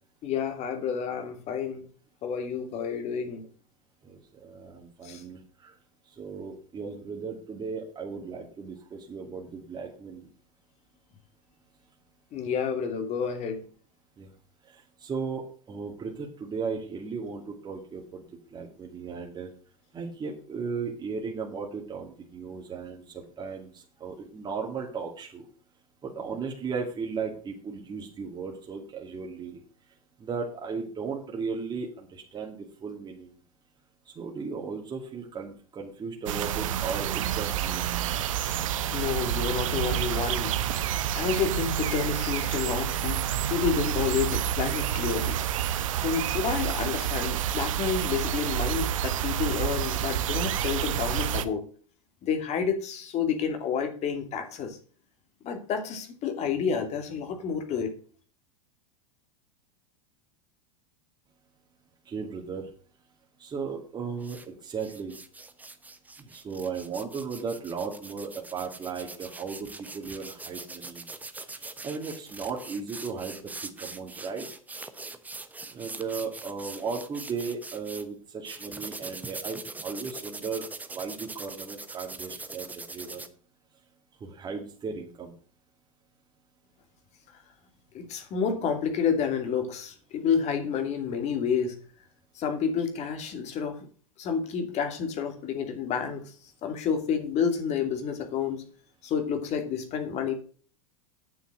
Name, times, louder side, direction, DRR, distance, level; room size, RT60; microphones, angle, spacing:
voice 1, 0.2-1.8 2.2-3.4 5.0-5.2 12.3-13.6 38.4-38.6 38.9-40.6 41.1-43.2 43.5-45.4 46.0-51.6 52.2-54.8 55.4-57.9 87.9-91.7 92.3-93.9 94.2-96.3 96.6-98.6 99.0-100.3, left 7 dB, 40° left, 6 dB, 2.8 m, -29 dB
voice 2, 4.4-5.4 6.2-10.2 14.2-14.3 15.0-15.4 15.7-18.2 18.5-19.5 19.9-23.0 23.4-23.7 24.0-25.4 26.2-29.6 30.2-31.9 32.3-33.3 34.2-37.8 62.1-62.6 63.4-64.4 64.6-65.2 66.3-69.7 69.9-71.0 71.8-73.4 73.8-74.5 75.7-80.7 80.9-82.7 82.9-83.2 84.2-85.3, right 5 dB, 25° right, 0 dB, 2.3 m, -35 dB
sound 1, 36.3-51.4, right 10 dB, 70° right, 1.0 m, -29 dB
sound 2, 64.2-64.5 64.8-78.0 78.5-83.3, right 3 dB, 10° right, 1.1 m, -42 dB
9.1 x 7.1 x 6.5 m, 0.43 s
hypercardioid pair, 100°, 17 cm